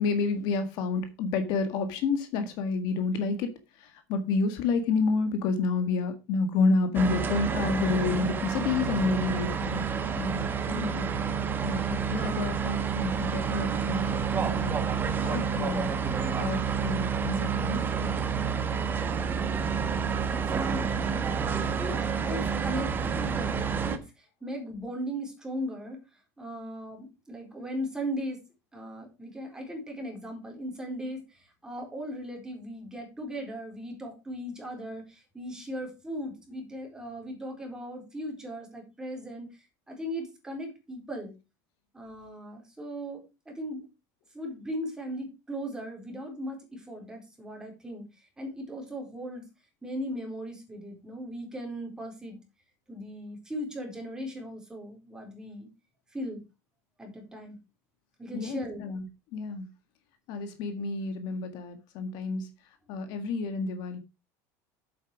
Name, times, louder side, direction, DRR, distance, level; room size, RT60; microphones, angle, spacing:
voice 1, 0.0-9.9 10.2-11.1 11.6-14.8 15.2-18.2 58.3-59.0 59.3-59.7 60.3-62.5 62.9-64.0, left 4 dB, 60° left, 1.7 m, -30 dB
sound 1, 6.9-24.0, right 6 dB, 25° right, 1.3 m, -29 dB
voice 2, 20.0-20.9 21.5-26.0 26.4-28.4 28.7-41.3 41.9-43.8 44.3-49.4 49.8-52.4 52.9-55.7 56.1-56.4 57.0-57.6 58.2-58.8 63.1-63.2, equal, 10° right, 4.1 m, -38 dB
8.4 x 7.9 x 4.9 m
cardioid pair, 140°, 8 cm